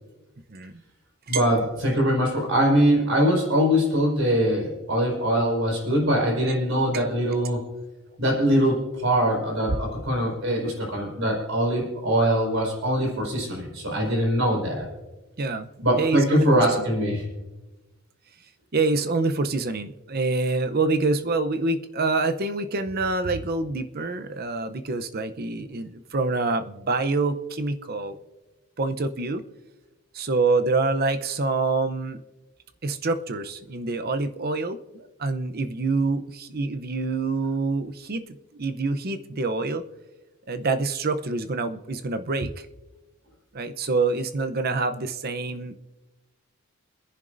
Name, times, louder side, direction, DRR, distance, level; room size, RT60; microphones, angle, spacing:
voice 1, 1.3-7.6 8.2-14.9 15.8-17.2, equal, 65° right, -1 dB, 5.0 m, -22 dB
voice 2, 15.4-15.7 16.0-16.7 18.7-28.2 28.8-29.4 30.1-32.2 32.8-39.8 40.5-42.7 43.5-45.8, right 3 dB, 45° right, 10 dB, 0.7 m, -26 dB
28.0 x 10.5 x 2.6 m, 1.1 s
head